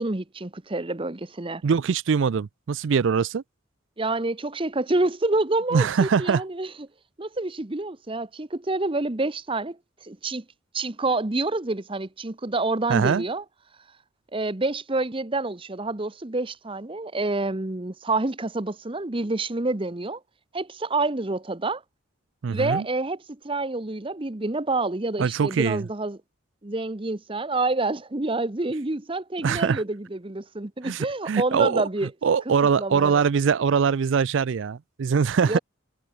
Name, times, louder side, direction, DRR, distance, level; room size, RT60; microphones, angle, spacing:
voice 1, 0.0-1.6 4.0-6.7 7.2-10.4 10.7-13.4 14.3-20.2 20.5-21.8 22.5-26.2 26.6-32.1 32.8-33.2 35.4-35.6, right 2 dB, 25° right, 0.9 m, -28 dB
voice 2, 1.6-3.4 5.7-6.4 12.9-13.2 22.4-22.8 25.2-25.8 29.4-29.8 30.8-31.9 32.2-35.6, right 6 dB, 60° right, 0.4 m, -22 dB
head